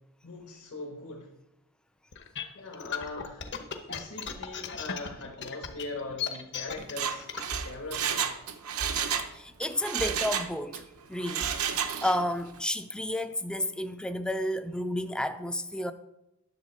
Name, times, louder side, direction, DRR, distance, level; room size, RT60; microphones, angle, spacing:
voice 1, 0.2-1.3 2.5-3.6 3.9-7.3 7.6-8.2, left 2 dB, 70° left, 1.5 m, -41 dB
sound 1, 2.1-7.5, left 7 dB, 55° left, 0.9 m, -36 dB
Mechanisms, 6.8-9.3 9.6-10.8 11.2-12.3 12.6-12.7, right 7 dB, 80° right, 0.8 m, -31 dB
voice 2, 9.3-10.8 11.1-15.9, left 1 dB, 5° left, 0.4 m, -31 dB
10.5 x 7.1 x 4.3 m
head